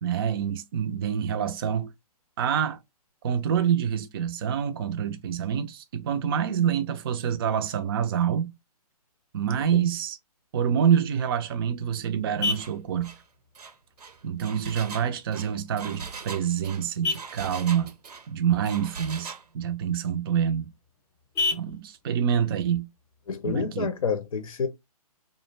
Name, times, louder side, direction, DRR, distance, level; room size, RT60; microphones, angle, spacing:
voice 1, 0.0-1.9 2.4-2.8 3.2-8.5 9.3-10.2 10.5-13.1 14.2-17.9 18.3-20.7 21.5-22.9 23.4-23.9, right 8 dB, 35° right, 0.4 m, -26 dB
Vehicle horn car horn honking, 11.1-24.1, left 4 dB, 15° left, 0.7 m, -38 dB
Engine, 12.5-12.7 13.0-13.2 13.5-18.3 18.7-19.5, right 5 dB, 80° right, 0.6 m, -41 dB
voice 2, 23.3-24.7, left 5 dB, 60° left, 0.6 m, -28 dB
2.4 x 2.1 x 3.1 m
hypercardioid pair, 140°, 20 cm